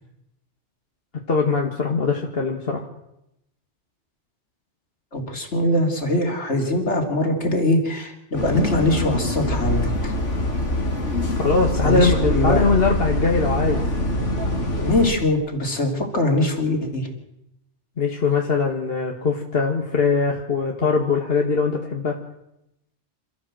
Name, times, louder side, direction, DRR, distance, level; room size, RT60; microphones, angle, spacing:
voice 1, 1.3-2.9 11.3-13.8 18.0-22.2, left 4 dB, 55° left, 1 dB, 1.9 m, -21 dB
voice 2, 5.1-10.1 11.8-12.7 14.8-17.1, left 1 dB, 70° left, 3 dB, 3.6 m, -22 dB
Bus, 8.3-15.1, left 1 dB, 90° left, 3.0 m, -24 dB
27.5 x 14.0 x 7.6 m, 0.86 s
omnidirectional pair, 1.2 m